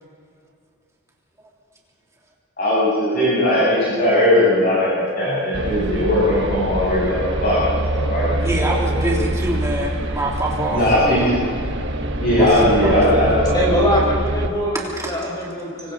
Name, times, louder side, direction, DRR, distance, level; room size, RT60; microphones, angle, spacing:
voice 1, 2.6-8.6 9.0-9.2 10.7-11.3 12.2-13.9, left 1 dB, 45° left, -9 dB, 7.3 m, -19 dB
sound 1, 5.5-14.5, right 1 dB, 55° right, 1.3 m, -25 dB
voice 2, 8.2-11.3 12.4-13.1 15.0-15.1, right 1 dB, 15° right, -3 dB, 3.4 m, -25 dB
voice 3, 13.5-15.9, equal, 20° left, -3 dB, 5.4 m, -22 dB
26.0 x 24.0 x 4.2 m, 2.2 s
head